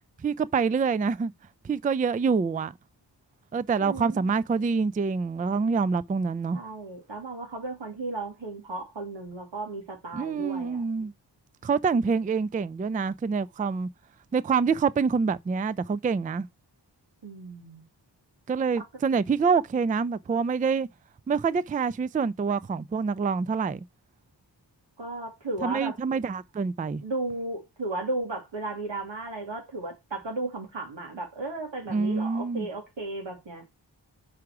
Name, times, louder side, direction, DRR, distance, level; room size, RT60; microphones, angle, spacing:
voice 1, 0.2-1.3 1.6-2.7 3.5-6.6 10.1-11.1 11.6-13.9 14.3-16.5 18.5-20.9 21.3-23.8 25.6-27.0 31.9-32.7, right 5 dB, 20° right, 0.3 m, -26 dB
voice 2, 3.8-4.3 6.5-10.8 17.2-17.8 25.0-25.9 27.0-33.6, right 2 dB, 90° right, 2.5 m, -35 dB
6.0 x 4.8 x 4.8 m
cardioid pair, 45°, 44 cm